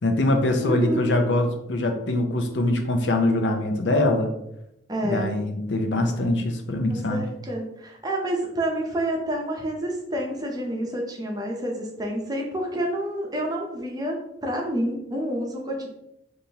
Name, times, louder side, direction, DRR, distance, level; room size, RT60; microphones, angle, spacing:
voice 1, 0.0-4.3 5.0-7.3, left 1 dB, 75° left, 5 dB, 0.6 m, -23 dB
voice 2, 0.6-1.2 4.9-5.4 6.9-14.2 14.4-15.9, right 1 dB, 20° right, 0 dB, 0.7 m, -28 dB
5.3 x 2.6 x 2.9 m, 0.83 s
head